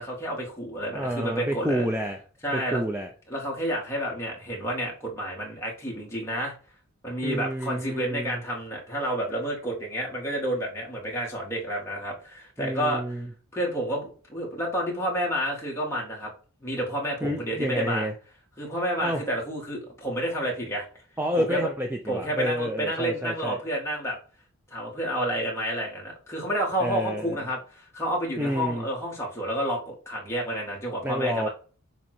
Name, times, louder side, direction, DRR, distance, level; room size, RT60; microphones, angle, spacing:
voice 1, 0.0-1.9 2.4-2.8 3.3-6.5 7.0-13.0 13.5-16.3 16.6-18.1 18.6-20.9 21.4-21.7 22.1-24.2 24.7-31.5, right 1 dB, 10° left, -3 dB, 2.1 m, -30 dB
voice 2, 0.9-2.2 2.5-3.1 7.2-8.4 12.6-13.3 17.2-18.1 19.0-19.2 21.2-23.6 26.8-27.4 28.4-28.9 31.0-31.5, equal, 10° right, 3 dB, 0.5 m, -29 dB
7.3 x 3.0 x 4.4 m, 0.38 s
head